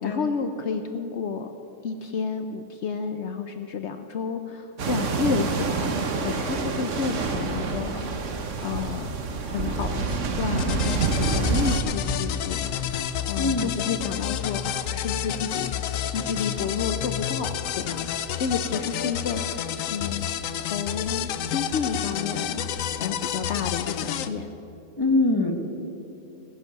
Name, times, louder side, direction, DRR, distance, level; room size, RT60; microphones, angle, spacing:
voice 1, 0.0-1.5 1.8-8.1 8.6-9.1 9.4-15.7 16.1-18.1 18.4-20.3 20.5-24.5, left 5 dB, 65° left, 7 dB, 1.0 m, -31 dB
sound 1, 4.8-11.8, right 4 dB, 70° right, 1.4 m, -27 dB
sound 2, 10.6-24.3, left 10 dB, 90° left, 1.0 m, -29 dB
voice 2, 13.4-13.7 25.0-25.5, left 2 dB, 20° left, 3 dB, 1.3 m, -23 dB
17.5 x 10.0 x 6.8 m, 3.0 s
omnidirectional pair, 1.3 m